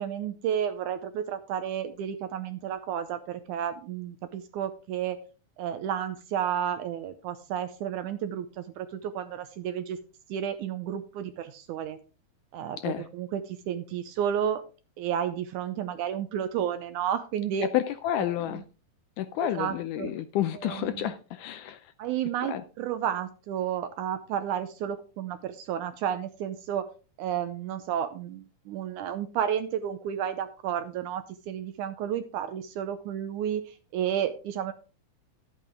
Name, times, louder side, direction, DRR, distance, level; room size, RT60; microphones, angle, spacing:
voice 1, 0.0-5.2 5.6-10.0 10.3-12.0 12.5-14.6 15.0-17.7 18.2-18.6 19.4-20.2 20.5-21.1 22.0-26.9 27.2-34.7, right 9 dB, 80° right, 10 dB, 1.9 m, -32 dB
voice 2, 17.7-18.6 19.2-21.8 22.5-22.6, left 12 dB, 80° left, 11 dB, 1.9 m, -30 dB
12.0 x 8.7 x 3.6 m, 0.34 s
omnidirectional pair, 4.1 m